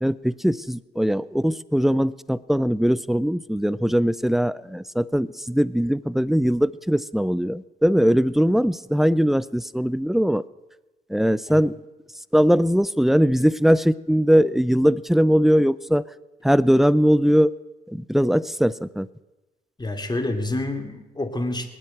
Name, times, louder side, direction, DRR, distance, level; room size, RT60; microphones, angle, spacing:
voice 1, 0.0-10.5 11.1-11.8 12.3-16.0 16.4-17.5 17.9-19.1, equal, ahead, 19 dB, 0.6 m, -20 dB
voice 2, 19.8-21.7, left 2 dB, 20° left, 5 dB, 2.7 m, -28 dB
19.5 x 9.4 x 7.9 m, 1.1 s
supercardioid pair, 55°, 21 cm